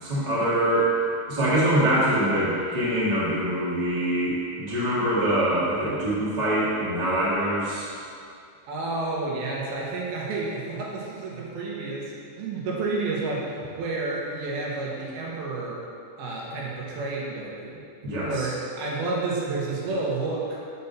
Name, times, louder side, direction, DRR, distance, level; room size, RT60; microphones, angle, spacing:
voice 1, 0.0-1.0 1.3-7.9 18.0-18.5, right 1 dB, 85° right, -9 dB, 0.3 m, -24 dB
voice 2, 8.7-12.1 12.4-15.8 16.2-17.8 18.2-20.6, right 3 dB, 70° right, -4 dB, 2.8 m, -30 dB
6.3 x 5.4 x 6.9 m, 2.4 s
omnidirectional pair, 4.9 m